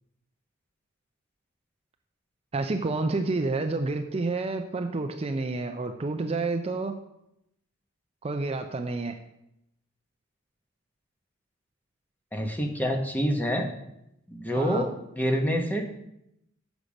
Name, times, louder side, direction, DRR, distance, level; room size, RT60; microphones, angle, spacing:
voice 1, 2.5-7.0 8.2-9.2 14.5-14.9, right 3 dB, 30° right, 6 dB, 0.4 m, -29 dB
voice 2, 12.3-13.7 14.3-15.9, equal, 10° left, 3 dB, 0.9 m, -27 dB
7.1 x 6.7 x 5.1 m, 0.81 s
head